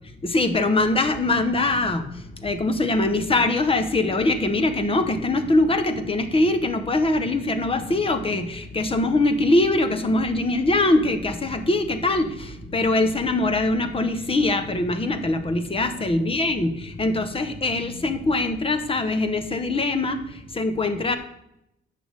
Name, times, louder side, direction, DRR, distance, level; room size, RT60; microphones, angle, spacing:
voice 1, 0.2-21.2, left 2 dB, 30° left, 9 dB, 1.0 m, -23 dB
sound 1, 0.7-18.6, equal, 50° left, 2.2 m, -42 dB
10.5 x 6.7 x 3.5 m, 0.81 s
cardioid pair, 90°, 20 cm